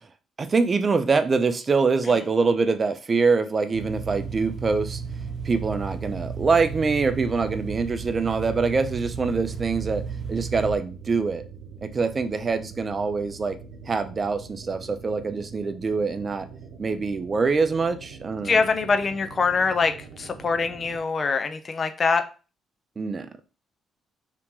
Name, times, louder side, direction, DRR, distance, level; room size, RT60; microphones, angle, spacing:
voice 1, 0.4-5.0 5.4-10.0 10.3-11.4 11.8-13.6 13.9-16.5 16.8-18.6 23.0-23.3, right 4 dB, 35° right, 0.5 m, -24 dB
sound 1, 3.7-10.8, right 5 dB, 55° right, 0.9 m, -34 dB
sound 2, 5.0-21.0, right 6 dB, 85° right, 0.6 m, -44 dB
voice 2, 18.4-22.2, left 4 dB, 40° left, 0.5 m, -24 dB
2.9 x 2.9 x 3.6 m
cardioid pair, 90°, 0 cm